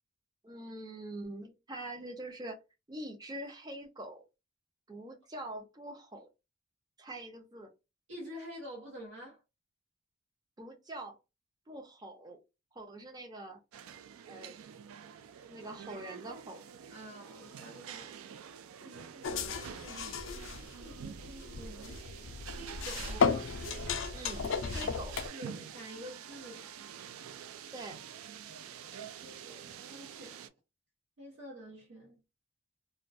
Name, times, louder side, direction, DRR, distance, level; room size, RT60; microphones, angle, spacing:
voice 1, 0.4-2.6 2.9-4.2 4.9-6.3 7.0-7.7 10.6-11.2 11.7-12.4 12.7-13.6 14.3-14.6 15.5-16.6 24.1-25.2 27.7-28.0, right 1 dB, 20° right, 0.5 m, -44 dB
voice 2, 8.1-9.4 16.9-18.2 18.8-20.3 20.8-22.0 22.5-23.4 24.7-24.9 25.3-26.7 28.6-30.4 31.2-32.2, equal, 65° right, 0.8 m, -49 dB
sound 1, 13.7-30.5, right 8 dB, 85° right, 0.3 m, -47 dB
sound 2, 19.2-25.3, left 5 dB, 65° left, 0.3 m, -34 dB
2.2 x 2.2 x 2.6 m
head